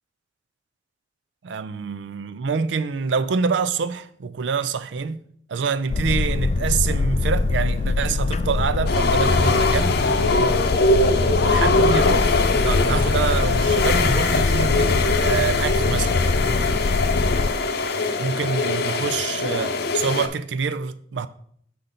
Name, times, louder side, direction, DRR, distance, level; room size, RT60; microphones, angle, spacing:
voice 1, 1.4-5.2 5.5-10.0 11.0-16.2 18.2-21.3, right 5 dB, 80° right, 0.4 m, -26 dB
Boat Water vehicle, 5.9-17.5, left 3 dB, 35° left, 0.3 m, -23 dB
sound 1, 8.9-20.3, left 3 dB, 60° left, 0.7 m, -22 dB
6.5 x 5.7 x 3.9 m
head